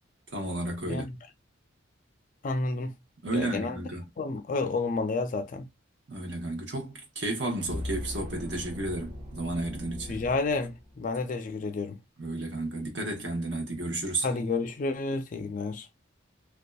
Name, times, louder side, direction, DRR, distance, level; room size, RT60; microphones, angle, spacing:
voice 1, 0.3-1.0 3.2-4.0 6.1-10.2 12.2-14.3, right 2 dB, 60° right, 0.9 m, -32 dB
voice 2, 0.9-1.2 2.4-3.0 3.3-3.8 4.2-5.7 10.1-12.0 14.2-15.9, left 3 dB, 40° left, 0.3 m, -30 dB
sound 1, 7.6-11.1, left 1 dB, 40° right, 1.3 m, -39 dB
2.6 x 2.2 x 2.2 m
head